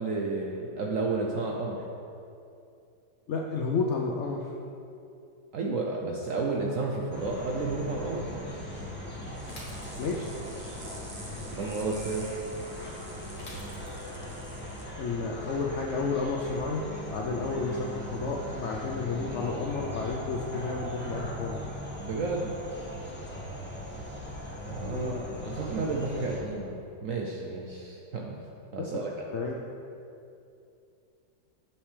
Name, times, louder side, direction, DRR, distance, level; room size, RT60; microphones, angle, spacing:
voice 1, 0.0-1.8 5.5-8.3 11.4-12.3 22.0-22.6 24.7-26.8 27.0-28.4 28.7-29.3, right 3 dB, 65° right, -1 dB, 0.9 m, -32 dB
voice 2, 3.3-4.5 10.0-10.3 15.0-16.8 17.1-21.6 24.9-25.3 28.9-29.0 29.3-29.5, left 4 dB, 75° left, 0 dB, 0.6 m, -31 dB
sound 1, 7.1-26.4, equal, 5° left, 1.1 m, -39 dB
sound 2, 9.3-14.8, right 1 dB, 30° right, 0.4 m, -49 dB
Bicycle / Mechanisms, 9.4-10.4 13.4-14.3, left 1 dB, 40° left, 1.7 m, -48 dB
8.7 x 7.2 x 3.2 m, 2.6 s
omnidirectional pair, 1.8 m